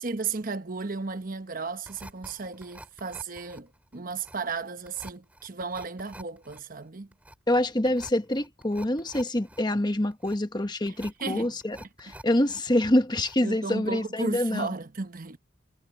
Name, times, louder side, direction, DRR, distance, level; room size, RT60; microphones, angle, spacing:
voice 1, 0.0-7.1 10.9-11.6 13.4-15.4, right 4 dB, 45° right, 1.0 m, -34 dB
sound 1, 1.8-12.6 12.9-13.6 13.9-14.0, right 1 dB, 5° right, 4.7 m, -48 dB
voice 2, 7.5-14.7, left 1 dB, 20° left, 1.2 m, -26 dB
head